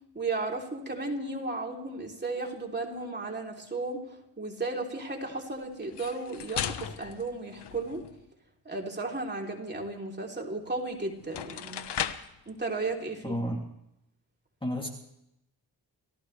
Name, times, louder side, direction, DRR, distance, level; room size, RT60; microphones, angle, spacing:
voice 1, 0.1-8.0 8.6-11.8 12.5-13.4, right 3 dB, 25° right, 0 dB, 3.2 m, -34 dB
sound 1, 5.8-8.2 10.7-10.8 11.2-12.4, left 9 dB, 70° left, 1.1 m, -36 dB
voice 2, 13.2-13.7 14.6-14.9, equal, 10° left, 0 dB, 2.7 m, -31 dB
29.0 x 15.0 x 3.3 m, 0.82 s
cardioid pair, 85°, 42 cm